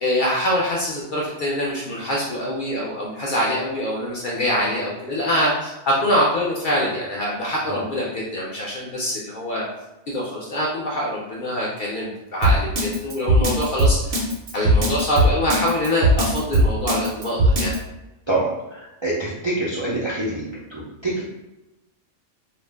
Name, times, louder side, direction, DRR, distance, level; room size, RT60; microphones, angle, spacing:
voice 1, 0.0-9.6 10.1-14.2 14.5-17.7, equal, 60° left, -5 dB, 0.5 m, -24 dB
Drum kit, 12.4-17.8, equal, 65° right, 0.9 m, -18 dB
voice 2, 19.0-20.4 20.7-21.2, right 2 dB, 45° right, -8 dB, 0.3 m, -25 dB
2.4 x 2.0 x 3.3 m, 1.0 s
omnidirectional pair, 1.3 m